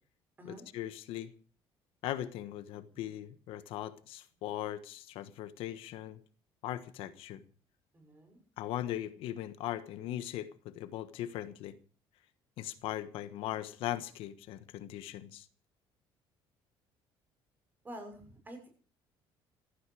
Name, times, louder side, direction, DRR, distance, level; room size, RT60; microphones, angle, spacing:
voice 1, 0.4-1.3 2.0-6.2 6.6-7.4 8.6-11.8 12.6-15.5, left 12 dB, 75° left, 1.3 m, -39 dB
voice 2, 7.9-8.4 17.8-18.7, right 1 dB, 20° right, 6.5 m, -48 dB
16.0 x 14.5 x 4.8 m
cardioid pair, 150°, 10 cm